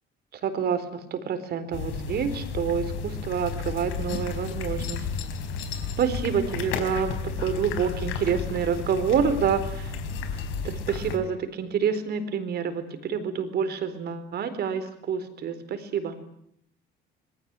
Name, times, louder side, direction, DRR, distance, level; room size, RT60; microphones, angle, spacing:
voice 1, 0.4-5.1 6.0-9.9 10.6-16.2, right 7 dB, 50° right, 11 dB, 4.2 m, -28 dB
sound 1, 1.7-11.2, left 5 dB, 80° left, 4.6 m, -32 dB
26.5 x 21.5 x 9.0 m, 0.72 s
cardioid pair, 130°, 20 cm